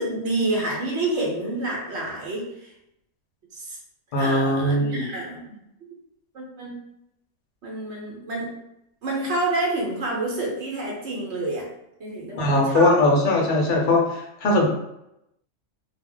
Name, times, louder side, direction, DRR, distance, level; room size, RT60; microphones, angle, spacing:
voice 1, 0.0-2.7 3.5-3.8 4.1-5.4 6.3-6.7 7.6-8.5 9.0-11.7 12.0-13.0, right 2 dB, 60° right, -2 dB, 1.0 m, -28 dB
voice 2, 4.1-5.0 12.4-14.6, left 2 dB, 50° left, -1 dB, 0.6 m, -20 dB
2.4 x 2.1 x 3.6 m, 0.83 s
omnidirectional pair, 1.4 m